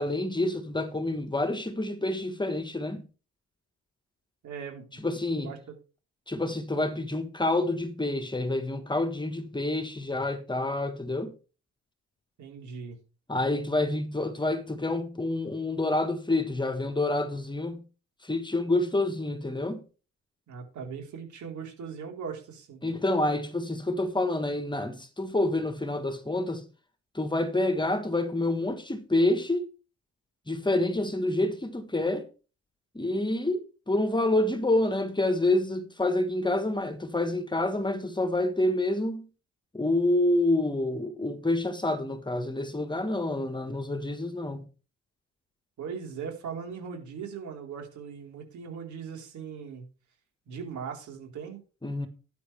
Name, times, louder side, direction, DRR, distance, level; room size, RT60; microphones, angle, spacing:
voice 1, 0.0-3.0 5.0-5.5 6.3-11.3 13.3-17.8 18.2-19.8 22.8-26.6 27.1-29.7 30.5-32.3 32.9-39.3 39.7-44.6 51.8-52.1, left 2 dB, 15° left, 1.5 m, -28 dB
voice 2, 4.4-5.0 5.3-5.6 12.4-13.0 20.5-22.8 45.8-49.9 50.5-51.6, right 6 dB, 70° right, 4.2 m, -39 dB
12.5 x 9.5 x 3.4 m
cardioid pair, 90°, 30 cm